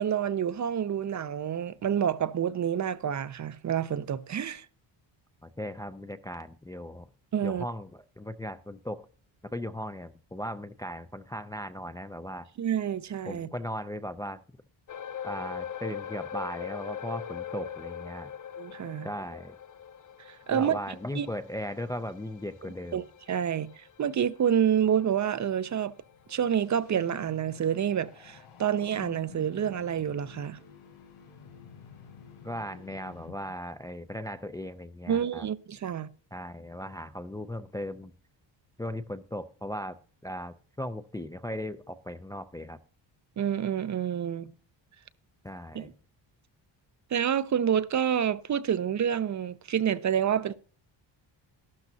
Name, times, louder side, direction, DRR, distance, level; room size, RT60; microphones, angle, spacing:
voice 1, 0.0-4.7 7.3-7.6 12.6-13.5 18.6-19.1 20.3-20.8 21.1-21.3 22.9-25.9 26.3-30.6 35.1-36.1 43.4-44.5 45.7-45.9 47.1-50.5, right 9 dB, 40° right, 0.6 m, -28 dB
voice 2, 5.4-7.1 7.4-9.1 9.4-12.5 13.3-14.4 15.2-18.3 19.0-19.6 20.5-23.0 32.4-35.5 36.3-38.1 38.8-40.0 40.2-42.8 45.4-45.9, equal, 10° left, 0.4 m, -37 dB
sound 1, 14.9-27.6 27.9-28.1 28.6-28.7, left 9 dB, 40° left, 0.7 m, -42 dB
sound 2, 26.0-33.7, left 6 dB, 85° left, 5.0 m, -51 dB
13.5 x 12.0 x 2.7 m
cardioid pair, 150°, 46 cm